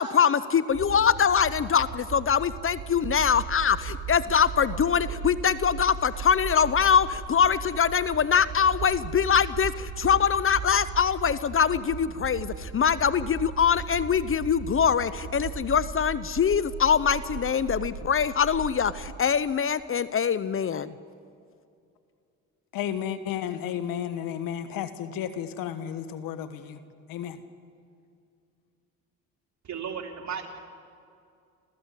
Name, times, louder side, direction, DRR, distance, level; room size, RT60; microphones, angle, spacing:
voice 1, 0.0-20.9, left 7 dB, 40° left, 0.8 m, -23 dB
sound 1, 0.7-19.1, right 6 dB, 70° right, 3.0 m, -37 dB
voice 2, 22.7-26.8 27.1-27.4, left 9 dB, 80° left, 1.4 m, -32 dB
voice 3, 29.6-30.5, right 7 dB, 55° right, 3.3 m, -34 dB
27.0 x 15.5 x 8.3 m
supercardioid pair, 70°, 34 cm